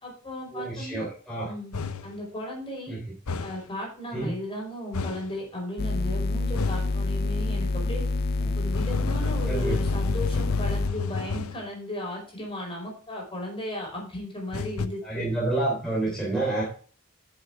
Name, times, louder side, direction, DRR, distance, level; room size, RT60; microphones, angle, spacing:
voice 1, 0.0-1.0 1.4-2.9 3.4-8.0 8.5-15.3, left 1 dB, 25° left, -1 dB, 5.1 m, -36 dB
voice 2, 0.5-1.5 2.9-3.0 4.1-4.4 8.4-8.5 9.5-9.8 15.0-16.6, right 2 dB, ahead, -6 dB, 3.5 m, -29 dB
sound 1, 1.7-2.2 3.3-3.7 4.9-5.3 6.5-7.0 8.7-11.7 14.5-14.9, left 5 dB, 75° left, 0.8 m, -31 dB
sound 2, 5.8-10.9, left 2 dB, 45° left, 0.4 m, -27 dB
11.0 x 7.2 x 3.5 m, 0.42 s
head